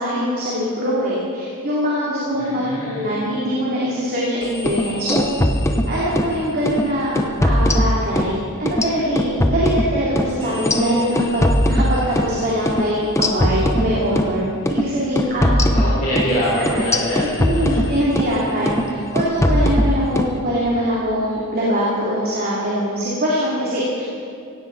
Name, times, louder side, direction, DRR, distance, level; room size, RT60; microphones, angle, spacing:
voice 1, 0.0-5.2 5.8-7.1 7.4-14.4 14.7-15.5 15.9-16.0 16.5-16.8 17.4-24.2, equal, 45° right, -7 dB, 3.0 m, -22 dB
voice 2, 2.4-3.1 15.3-17.8 18.2-19.0, equal, 35° left, -9 dB, 4.1 m, -25 dB
sound 1, 4.5-6.3 6.7-6.8 7.2-8.3 8.7-12.3 12.7-12.8 13.2-14.3 14.7-14.8 15.2-18.3 18.7-18.9 19.2-20.3, left 1 dB, 15° left, 0.8 m, -20 dB
17.0 x 16.5 x 4.1 m, 2.5 s
head